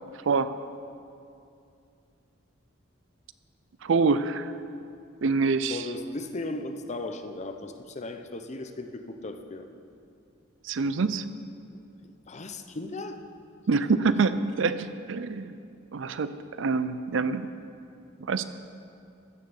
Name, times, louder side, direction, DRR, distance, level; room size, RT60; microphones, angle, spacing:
voice 1, 3.8-4.5 5.2-5.9 10.6-11.2 13.7-15.6 15.9-17.5 18.2-18.4, right 4 dB, 70° right, 13 dB, 0.5 m, -26 dB
voice 2, 5.7-9.7 12.0-13.2, left 2 dB, 35° left, 7 dB, 0.7 m, -37 dB
15.0 x 6.6 x 7.1 m, 2.5 s
head